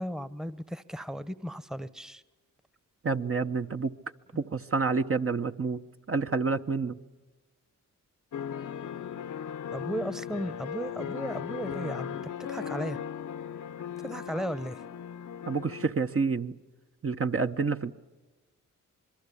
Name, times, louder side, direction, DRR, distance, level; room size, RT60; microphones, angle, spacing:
voice 1, 0.0-2.2 9.7-13.0 14.0-14.8, equal, ahead, 15 dB, 1.0 m, -35 dB
voice 2, 3.0-3.9 4.3-5.8 6.1-7.0 15.5-16.5 17.0-17.9, right 4 dB, 40° right, 6 dB, 0.9 m, -28 dB
sound 1, 8.3-15.9, left 8 dB, 60° left, 0.8 m, -37 dB
26.5 x 21.5 x 8.5 m, 1.2 s
cardioid pair, 55°, 34 cm